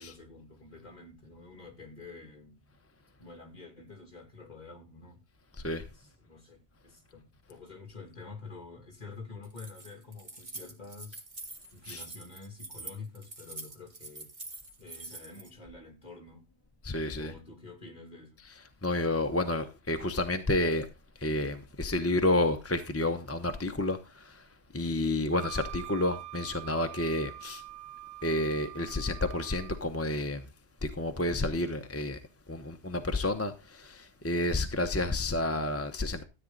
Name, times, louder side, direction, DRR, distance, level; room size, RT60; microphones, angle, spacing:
voice 1, 0.0-2.6 3.2-5.2 5.9-11.2 11.7-14.3 14.8-16.4 17.1-18.4, left 4 dB, 40° left, 2.8 m, -48 dB
Keys jangling, 9.4-15.5, right 2 dB, 45° right, 1.8 m, -45 dB
voice 2, 16.8-17.3 18.8-20.9 21.2-24.5 24.7-27.6 28.2-30.5 30.8-32.2 32.5-36.2, left 2 dB, 15° left, 0.8 m, -30 dB
Wind instrument woodwind instrument, 25.3-29.8, right 16 dB, 65° right, 1.0 m, -45 dB
13.5 x 8.6 x 3.9 m
omnidirectional pair, 1.1 m